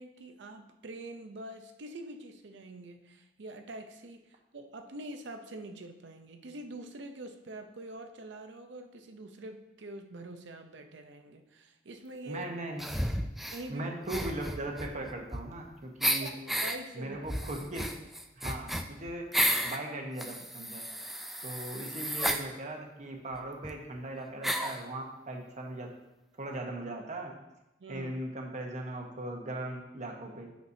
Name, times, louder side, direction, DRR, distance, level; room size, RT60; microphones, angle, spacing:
voice 1, 0.0-12.5 13.5-13.9 16.2-17.4 27.8-28.1, right 1 dB, 70° right, 6 dB, 0.6 m, -45 dB
voice 2, 12.3-12.8 13.7-16.3 16.9-17.9 18.4-19.2 19.6-20.8 21.4-25.9 26.4-27.3 27.9-30.5, right 1 dB, 40° right, 2 dB, 1.0 m, -39 dB
sound 1, 12.8-13.6 14.1-15.7 16.0-16.8 17.3-19.8 20.2-22.4 23.3-23.4 23.6-23.7 24.4-24.8, equal, ahead, 0.3 m, -32 dB
8.2 x 5.9 x 2.7 m, 0.95 s
head